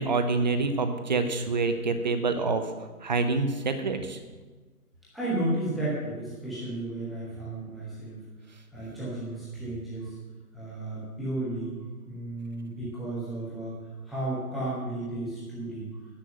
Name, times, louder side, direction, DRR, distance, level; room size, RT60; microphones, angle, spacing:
voice 1, 0.0-2.6 3.0-4.2, right 3 dB, 30° right, 8 dB, 0.8 m, -26 dB
voice 2, 5.1-8.2 8.7-10.2 10.5-11.7 12.1-13.7 14.0-15.9, right 1 dB, ahead, -10 dB, 0.6 m, -33 dB
10.0 x 7.7 x 7.7 m, 1.3 s
hypercardioid pair, 160°, 46 cm